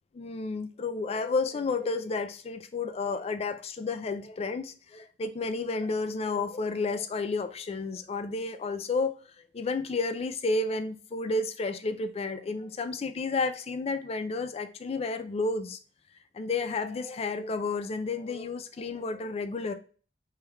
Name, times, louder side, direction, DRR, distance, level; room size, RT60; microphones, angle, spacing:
voice 1, 0.1-15.8 16.3-19.7, left 3 dB, 35° left, 9 dB, 0.3 m, -31 dB
3.3 x 3.1 x 2.2 m, 0.40 s
head